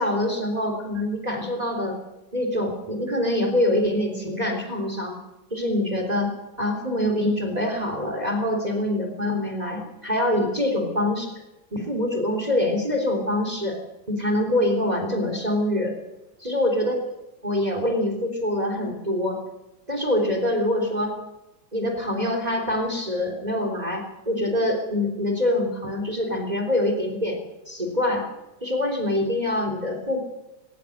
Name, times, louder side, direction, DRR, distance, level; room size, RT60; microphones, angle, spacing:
voice 1, 0.0-2.0 2.3-5.2 5.5-6.3 6.6-11.3 11.7-13.8 14.1-15.9 16.4-17.0 17.4-19.4 19.9-21.1 21.7-27.4 27.7-28.3 28.6-30.2, left 1 dB, 20° right, 3 dB, 3.5 m, -25 dB
19.0 x 17.5 x 8.0 m, 0.98 s
omnidirectional pair, 2.0 m